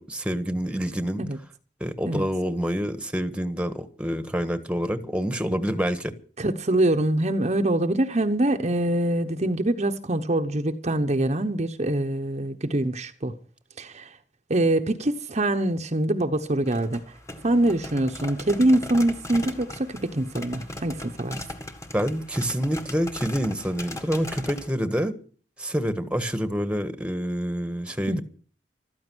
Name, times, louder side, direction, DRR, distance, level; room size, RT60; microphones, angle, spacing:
voice 1, 0.0-1.2 1.8-6.1 21.9-25.2 25.6-28.2, equal, 5° right, 1.4 m, -27 dB
voice 2, 6.4-13.3 13.8-14.2 14.5-17.1 17.4-21.4 28.1-28.2, right 1 dB, 40° right, 1.0 m, -24 dB
sound 1, 16.5-24.7, left 1 dB, 15° left, 1.8 m, -38 dB
15.0 x 13.5 x 6.3 m
head